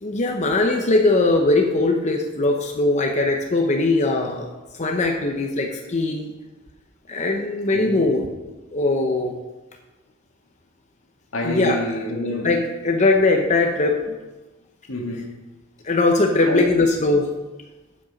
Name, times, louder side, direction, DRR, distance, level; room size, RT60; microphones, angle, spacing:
voice 1, 0.0-6.3 7.1-8.3 8.7-9.3 11.4-11.8 12.4-14.2 15.8-17.3, left 2 dB, 35° left, 0.8 m, -20 dB
voice 2, 7.7-8.1 11.3-12.5 14.9-15.3 16.5-16.7, left 1 dB, 80° left, 1.7 m, -27 dB
8.2 x 7.7 x 5.2 m
head